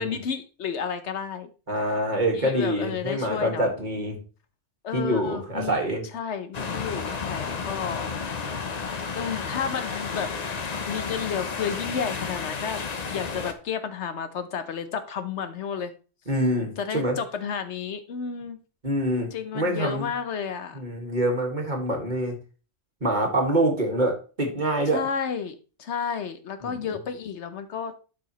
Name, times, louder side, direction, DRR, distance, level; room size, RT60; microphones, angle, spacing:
voice 1, 0.0-1.5 2.3-3.6 4.8-5.8 6.1-8.1 9.1-10.3 10.8-12.8 13.1-15.9 16.8-18.6 19.3-20.8 24.9-28.0, left 7 dB, 70° left, 10 dB, 1.0 m, -31 dB
voice 2, 1.7-4.2 4.9-6.1 16.3-17.2 18.8-20.1 20.7-22.4 23.0-25.0 26.6-27.0, right 1 dB, 40° right, 1 dB, 1.8 m, -25 dB
sound 1, 6.5-13.5, left 5 dB, 40° left, 0.7 m, -32 dB
12.0 x 4.9 x 3.0 m, 0.35 s
omnidirectional pair, 1.3 m